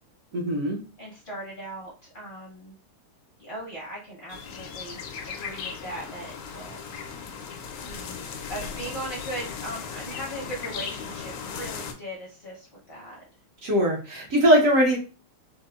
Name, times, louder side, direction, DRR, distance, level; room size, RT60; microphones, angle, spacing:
voice 1, 0.3-0.8 13.6-15.0, equal, 75° right, -3 dB, 0.7 m, -21 dB
voice 2, 1.0-2.7 3.4-7.0 7.8-13.2, right 1 dB, 50° left, -6 dB, 0.7 m, -39 dB
sound 1, 4.3-11.9, left 6 dB, 85° left, 1.5 m, -37 dB
4.4 x 2.1 x 2.3 m, 0.35 s
omnidirectional pair, 2.4 m